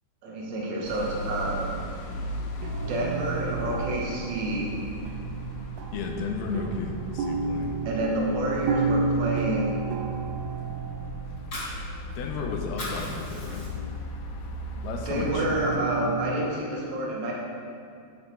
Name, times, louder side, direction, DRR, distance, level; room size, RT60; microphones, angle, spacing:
voice 1, 0.2-1.8 2.9-4.7 7.8-9.7 15.1-17.3, right 1 dB, 60° right, -2 dB, 2.4 m, -29 dB
sound 1, 0.8-15.7, equal, 75° left, 2.4 m, -37 dB
sound 2, 2.4-14.2 15.3-16.5, right 5 dB, 85° right, 2.6 m, -32 dB
voice 2, 5.9-7.8 12.2-13.7 14.8-15.6, left 4 dB, 90° left, 3 dB, 2.8 m, -33 dB
Fire, 11.2-12.4 12.6-14.0 14.4-14.6 15.0-15.9, left 2 dB, 35° left, 2.6 m, -37 dB
11.0 x 8.3 x 3.4 m, 2.4 s
omnidirectional pair, 4.4 m